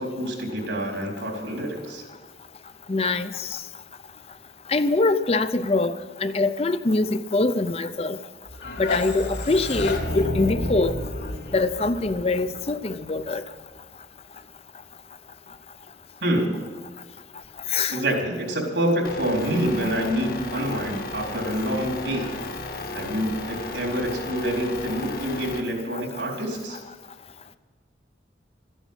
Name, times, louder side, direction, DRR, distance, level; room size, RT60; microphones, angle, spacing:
voice 1, 0.0-2.0 16.2-16.7 17.9-22.3 22.9-26.8, right 1 dB, 85° right, 4.1 m, -27 dB
voice 2, 2.9-3.6 4.7-5.9 6.2-8.2 8.8-11.0 11.5-13.4 17.7-18.0, left 3 dB, 35° left, 0.5 m, -23 dB
sound 1, 8.5-13.4, left 1 dB, 75° left, 3.5 m, -31 dB
sound 2, 19.0-25.6, left 2 dB, 55° left, 1.4 m, -35 dB
14.0 x 10.0 x 8.9 m
head